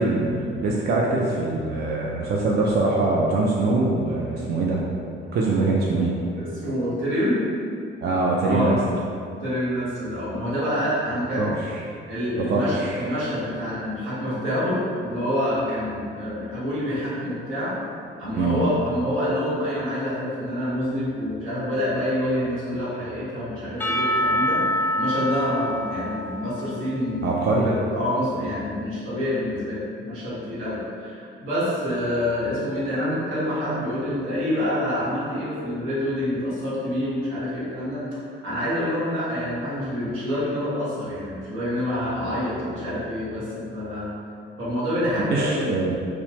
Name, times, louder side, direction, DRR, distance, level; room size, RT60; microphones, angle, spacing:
voice 1, 0.0-4.8 5.3-6.1 8.0-8.8 11.4-11.5 12.3-13.0 18.3-18.6 27.2-27.7 45.3-45.9, right 3 dB, 55° right, -3 dB, 0.4 m, -23 dB
voice 2, 6.4-7.4 8.4-8.7 9.4-11.5 12.1-17.7 18.2-24.6 25.0-38.0 38.4-44.1 44.6-45.7, equal, 90° right, -9 dB, 1.0 m, -27 dB
Percussion / Church bell, 23.8-27.8, equal, 10° left, 0.4 m, -26 dB
3.1 x 2.0 x 2.9 m, 2.4 s
cardioid pair, 90°, 20 cm